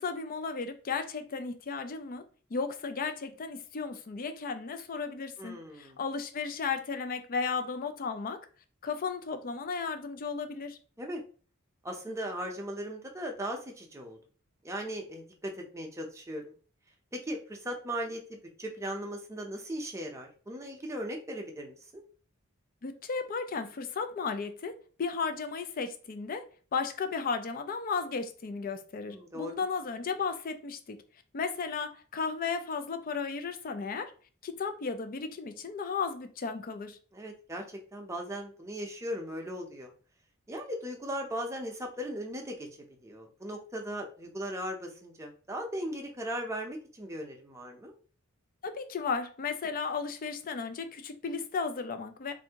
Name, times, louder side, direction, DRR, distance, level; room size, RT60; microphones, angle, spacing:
voice 1, 0.0-2.2 2.5-8.4 8.8-10.8 22.8-26.4 26.7-31.0 31.3-34.1 34.4-37.0 48.6-52.3, left 5 dB, 40° left, 0.4 m, -34 dB
voice 2, 5.4-6.0 11.0-11.2 11.8-14.2 14.6-16.5 17.1-22.0 29.0-29.5 37.1-37.6 37.9-39.9 40.5-42.7 43.0-47.9, equal, 15° right, 0.6 m, -38 dB
3.4 x 2.6 x 2.8 m
head